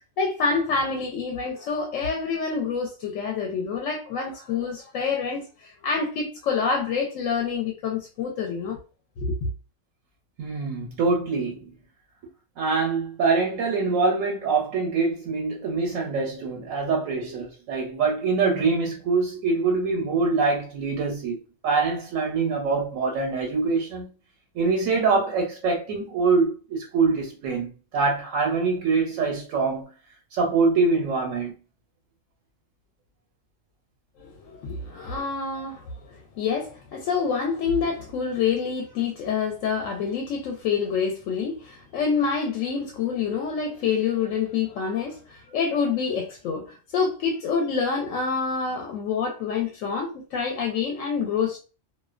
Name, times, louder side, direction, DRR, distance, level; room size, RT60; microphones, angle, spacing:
voice 1, 0.2-8.8 9.2-9.5 34.2-51.6, left 5 dB, 80° left, 1.0 m, -27 dB
voice 2, 10.4-11.7 12.6-21.4 21.6-24.1 24.5-29.9 30.3-31.5, right 4 dB, 90° right, 1.0 m, -24 dB
2.5 x 2.1 x 2.3 m
omnidirectional pair, 1.3 m